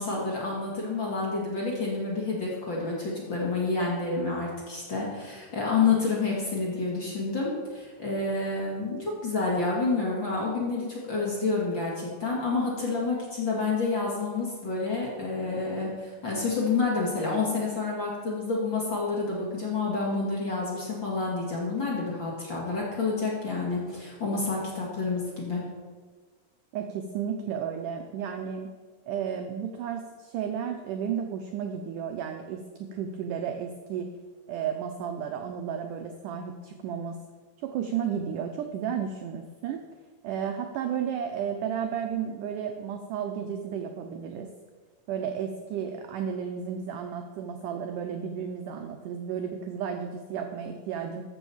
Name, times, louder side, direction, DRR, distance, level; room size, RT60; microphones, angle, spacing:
voice 1, 0.0-25.6, left 3 dB, 35° left, -4 dB, 2.1 m, -29 dB
voice 2, 26.7-28.7 29.1-32.6 32.9-34.1 34.5-37.2 37.6-39.8 40.2-44.5 45.1-51.2, right 8 dB, 85° right, 5 dB, 1.8 m, -33 dB
13.5 x 5.4 x 7.0 m, 1.4 s
omnidirectional pair, 4.6 m